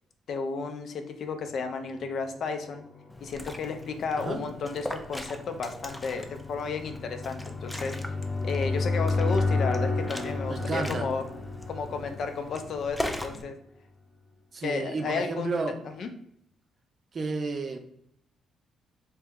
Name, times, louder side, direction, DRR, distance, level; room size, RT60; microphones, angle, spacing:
voice 1, 0.3-2.8 3.2-8.0 8.4-11.2 11.7-13.6 14.6-15.6 15.8-16.1, left 4 dB, 60° left, 6 dB, 0.5 m, -33 dB
sound 1, 2.4-13.2, left 3 dB, 30° left, 0.9 m, -32 dB
Liquid, 3.1-13.4, left 1 dB, 5° left, 0.4 m, -40 dB
voice 2, 10.5-11.1 14.5-15.8 17.1-17.8, right 3 dB, 45° right, 6 dB, 0.6 m, -31 dB
3.2 x 2.9 x 3.6 m, 0.70 s
cardioid pair, 90°, 0 cm